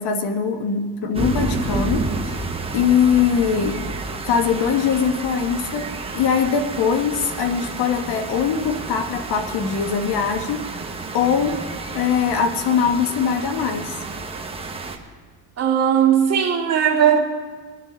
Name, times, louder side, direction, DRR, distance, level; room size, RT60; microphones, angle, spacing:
voice 1, 0.0-3.8 4.3-10.8 11.1-13.9, left 7 dB, 65° left, 7 dB, 1.3 m, -22 dB
sound 1, 1.1-15.0, right 3 dB, 15° right, 1.1 m, -30 dB
voice 2, 15.6-17.2, right 8 dB, 35° right, -3 dB, 2.2 m, -17 dB
23.5 x 9.9 x 3.9 m, 1.5 s
cardioid pair, 130°, 42 cm